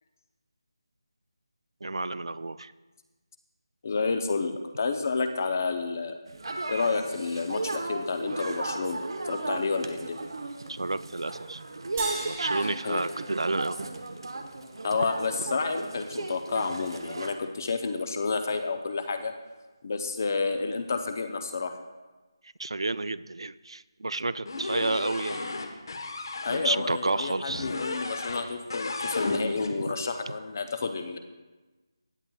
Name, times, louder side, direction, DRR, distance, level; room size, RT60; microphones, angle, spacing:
voice 1, 1.8-2.7 10.7-11.6 12.2-13.8 22.6-25.4 26.5-27.7 29.9-30.0, right 2 dB, 90° right, 17 dB, 0.4 m, -30 dB
voice 2, 3.8-6.2 6.7-10.2 12.8-13.0 14.8-19.3 19.8-21.8 26.4-31.2, left 4 dB, 35° left, 7 dB, 0.6 m, -30 dB
sound 1, 6.3-17.3, right 2 dB, 65° right, 1.0 m, -35 dB
sound 2, 12.0-14.6, right 4 dB, 15° right, 0.9 m, -40 dB
sound 3, 24.5-26.6 27.5-28.4 28.7-29.7, left 3 dB, 55° left, 1.0 m, -33 dB
16.0 x 8.5 x 2.3 m, 1.2 s
figure-of-eight pair, 170°, 3 cm